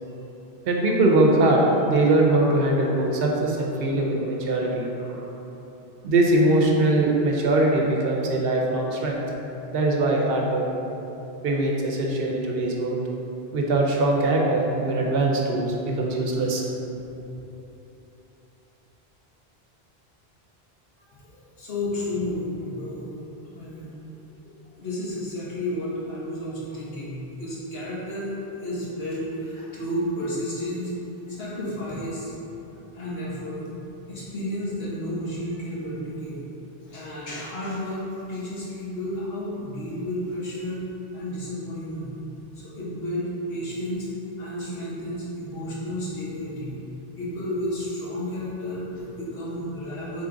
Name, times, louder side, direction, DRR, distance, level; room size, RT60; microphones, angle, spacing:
voice 1, 0.7-5.2 6.0-9.2 9.7-10.6 11.4-13.0 13.5-16.6, right 2 dB, 70° right, -1 dB, 0.8 m, -22 dB
voice 2, 21.2-23.1 23.5-23.9 24.3-30.9 31.3-32.3 32.9-33.6 34.1-36.4 36.8-40.8 41.1-42.1 42.5-44.1 44.4-46.8 47.2-50.3, left 1 dB, 70° left, -7 dB, 1.3 m, -32 dB
3.8 x 3.7 x 3.7 m, 3.0 s
omnidirectional pair, 1.1 m